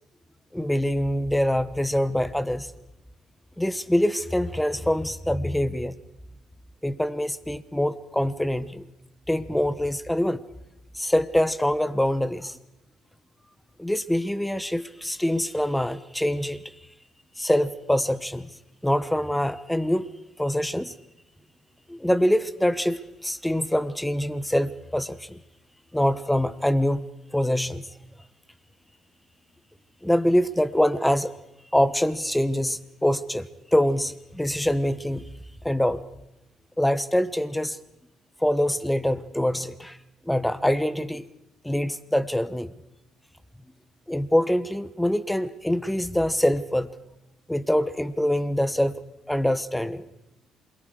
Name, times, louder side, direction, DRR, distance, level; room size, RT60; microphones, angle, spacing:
voice 1, 0.5-2.7 3.6-5.9 6.8-8.8 9.3-10.4 10.9-12.6 13.8-16.6 17.4-18.5 18.8-20.1 20.4-20.9 21.9-25.4 25.9-27.0 27.3-27.9 30.0-31.3 31.7-35.2 35.6-36.0 36.8-37.8 38.4-40.0 40.2-41.3 41.6-42.7 44.1-46.9 47.5-49.0 49.3-50.1, left 1 dB, 5° left, 14 dB, 1.2 m, -24 dB
28.0 x 22.0 x 4.9 m, 0.91 s
supercardioid pair, 70°, 0 cm